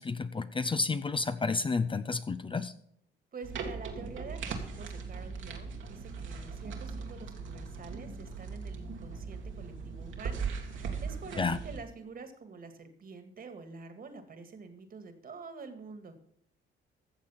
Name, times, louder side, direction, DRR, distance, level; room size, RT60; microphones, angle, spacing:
voice 1, 0.0-2.7 11.4-11.6, left 4 dB, 25° left, 12 dB, 0.6 m, -31 dB
voice 2, 3.3-10.5 10.7-16.2, right 4 dB, 45° right, 8 dB, 2.0 m, -47 dB
sound 1, 3.4-11.8, right 5 dB, 75° right, 2.1 m, -39 dB
14.0 x 7.2 x 5.7 m, 0.67 s
cardioid pair, 90°, 20 cm